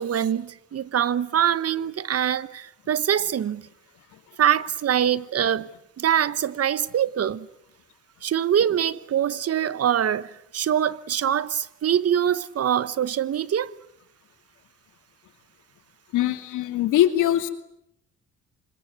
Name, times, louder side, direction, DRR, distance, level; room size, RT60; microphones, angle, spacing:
voice 1, 0.0-3.6 4.4-5.7 6.0-7.5 8.2-13.7, right 9 dB, 55° right, 1.1 m, -24 dB
voice 2, 16.1-17.5, left 12 dB, 90° left, 2.6 m, -22 dB
26.0 x 22.0 x 9.7 m
cardioid pair, 90°, 30 cm